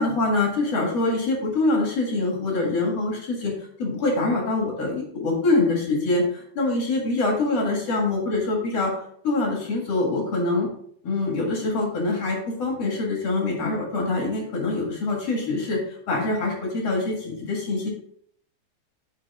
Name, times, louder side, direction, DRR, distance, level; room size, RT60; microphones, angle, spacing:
voice 1, 0.0-3.5 3.8-8.9 9.2-10.7 11.0-15.8 16.1-17.9, left 2 dB, 50° left, -1 dB, 2.2 m, -24 dB
9.1 x 5.8 x 3.5 m, 0.65 s
omnidirectional pair, 4.9 m